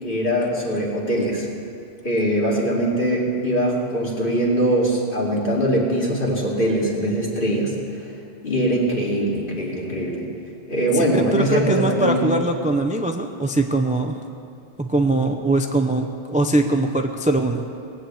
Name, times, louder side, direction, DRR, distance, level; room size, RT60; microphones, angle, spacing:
voice 1, 0.0-1.5 2.0-7.8 8.4-10.2 10.7-12.3, right 1 dB, 55° left, -3 dB, 2.7 m, -22 dB
voice 2, 10.9-14.2 14.8-17.6, right 2 dB, 10° right, 5 dB, 0.5 m, -22 dB
19.0 x 8.5 x 7.9 m, 2.6 s
omnidirectional pair, 1.1 m